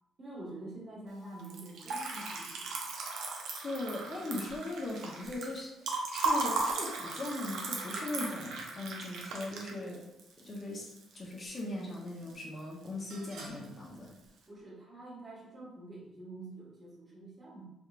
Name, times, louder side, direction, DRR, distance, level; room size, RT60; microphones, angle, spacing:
voice 1, 0.2-2.8 9.7-10.0 11.8-11.9 13.5-13.7 14.5-17.7, right 2 dB, 30° right, -5 dB, 1.5 m, -47 dB
Liquid, 1.4-11.6 11.9-12.6 12.9-13.6, right 3 dB, 85° right, 0.6 m, -37 dB
voice 2, 3.6-10.0 10.4-14.1, left 2 dB, 40° left, -3 dB, 0.9 m, -39 dB
3.6 x 3.1 x 2.4 m, 0.88 s
cardioid pair, 90°, 0 cm